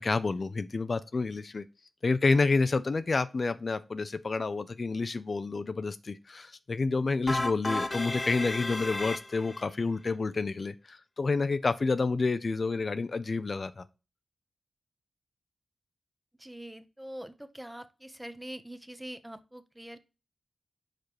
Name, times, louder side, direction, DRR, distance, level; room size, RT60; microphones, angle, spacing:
voice 1, 0.0-1.6 2.0-13.8, left 3 dB, 55° left, 0.5 m, -29 dB
sound 1, 7.3-9.7, left 2 dB, 30° left, 0.9 m, -33 dB
voice 2, 16.4-20.0, right 1 dB, 10° right, 0.9 m, -44 dB
4.9 x 4.4 x 4.7 m
cardioid pair, 40°, 0 cm